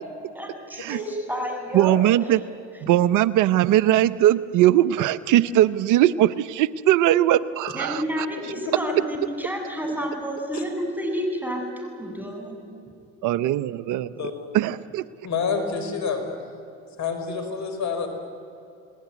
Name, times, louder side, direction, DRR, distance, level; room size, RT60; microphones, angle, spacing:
voice 1, 0.3-1.9 7.7-12.6, equal, 5° right, 2 dB, 7.6 m, -30 dB
voice 2, 1.7-2.4 2.8-8.5 13.2-14.3 14.5-15.0, right 13 dB, 65° right, 17 dB, 0.8 m, -20 dB
voice 3, 8.4-9.0 10.5-10.6 14.2-14.3 15.2-16.2 17.0-18.1, left 5 dB, 55° left, 7 dB, 5.1 m, -28 dB
29.0 x 20.0 x 9.4 m, 2.7 s
supercardioid pair, 75°, 33 cm